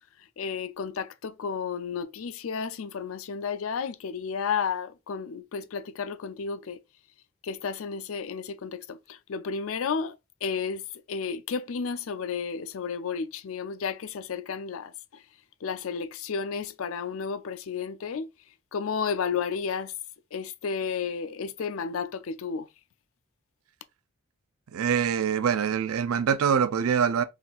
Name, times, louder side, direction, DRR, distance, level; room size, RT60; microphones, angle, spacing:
voice 1, 0.4-6.8 7.4-10.8 11.1-15.2 15.6-18.3 18.7-19.9 20.3-22.7, left 6 dB, 70° left, 0.4 m, -32 dB
voice 2, 24.7-27.2, right 7 dB, 85° right, 0.4 m, -24 dB
4.2 x 3.6 x 2.4 m
head